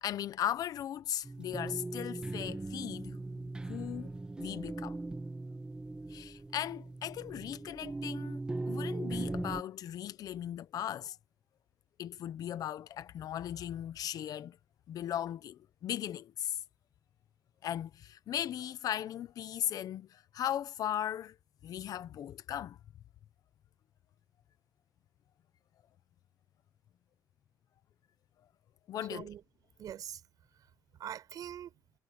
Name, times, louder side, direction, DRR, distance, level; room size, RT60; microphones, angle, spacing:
voice 1, 0.0-3.2 3.6-4.1 4.4-5.0 6.1-11.2 12.0-14.6 14.9-16.6 17.6-21.4 21.6-22.8 28.9-29.3, left 11 dB, 75° left, 0.8 m, -37 dB
sound 1, 1.2-9.6, right 2 dB, 15° right, 1.5 m, -39 dB
voice 2, 29.1-29.4 29.8-30.2 30.5-31.8, right 10 dB, 75° right, 6.3 m, -44 dB
wide cardioid pair, 175°, 6 cm